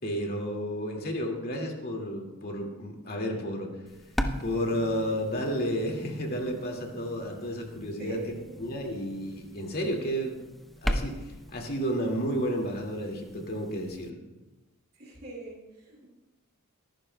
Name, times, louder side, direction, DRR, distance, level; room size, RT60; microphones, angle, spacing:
voice 1, 0.0-3.7 4.4-8.2 8.6-10.4 10.8-14.2, equal, 45° left, 1 dB, 2.1 m, -32 dB
sound 1, 3.9-14.1, equal, ahead, 0.6 m, -38 dB
voice 2, 8.0-8.6 14.9-16.1, right 3 dB, 45° right, -3 dB, 2.4 m, -42 dB
24.0 x 11.5 x 2.2 m, 1.1 s
head